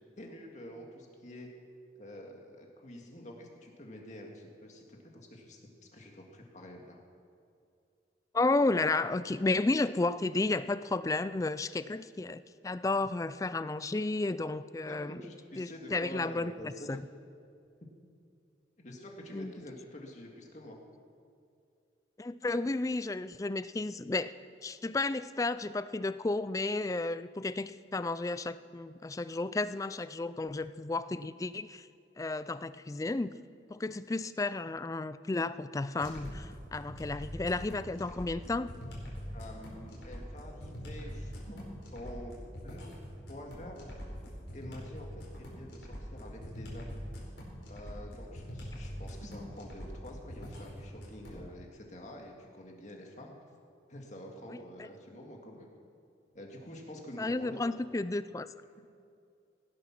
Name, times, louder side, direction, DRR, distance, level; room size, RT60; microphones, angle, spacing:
voice 1, 0.2-1.5 2.0-5.6 5.9-7.0 14.9-17.1 18.8-20.8 39.3-43.9 44.5-47.0 47.7-53.4 53.9-55.7 56.3-57.6, left 1 dB, 40° left, 1 dB, 2.0 m, -47 dB
voice 2, 8.3-15.2 15.6-17.0 19.3-19.6 22.2-24.3 24.6-31.9 32.2-33.4 33.7-38.7 54.5-54.9 57.2-58.5, left 2 dB, 20° left, 15 dB, 0.3 m, -32 dB
sound 1, 36.0-51.4, equal, 85° left, 4.6 m, -43 dB
16.5 x 11.5 x 5.9 m, 2.5 s
head